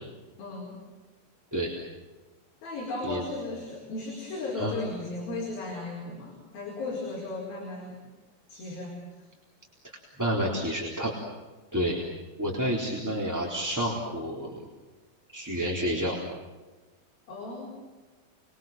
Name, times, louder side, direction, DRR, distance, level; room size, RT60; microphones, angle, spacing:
voice 1, 0.4-0.8 2.6-8.0 8.5-9.0 17.3-17.7, left 2 dB, 55° left, -2 dB, 6.5 m, -36 dB
voice 2, 10.2-11.1 11.7-12.0 12.4-14.6 15.3-16.1, equal, 5° right, -4 dB, 3.0 m, -29 dB
29.5 x 22.5 x 7.5 m, 1.2 s
omnidirectional pair, 5.2 m